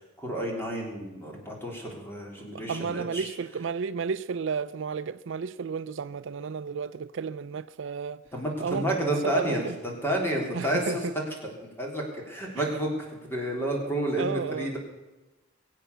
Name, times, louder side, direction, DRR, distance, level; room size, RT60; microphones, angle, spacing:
voice 1, 0.2-3.3 8.3-11.0 11.8-14.8, right 1 dB, 10° left, 3.5 m, -30 dB
voice 2, 2.4-8.2 8.6-9.8 10.5-11.1 12.6-12.7 13.7-13.9 14.2-14.7, right 5 dB, 65° right, 0.4 m, -33 dB
22.0 x 8.4 x 6.8 m
head